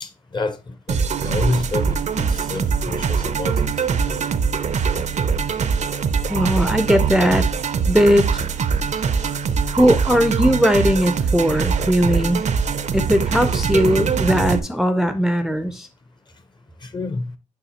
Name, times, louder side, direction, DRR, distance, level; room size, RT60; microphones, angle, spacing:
voice 1, 0.0-3.6 4.1-4.2 16.8-17.3, left 3 dB, 35° left, 0.7 m, -28 dB
sound 1, 0.9-14.6, right 6 dB, 65° right, 0.5 m, -22 dB
voice 2, 6.3-7.5 7.9-8.4 9.7-12.4 12.9-15.9, equal, 5° right, 0.4 m, -18 dB
7.0 x 5.5 x 2.8 m
wide cardioid pair, 145°, 13 cm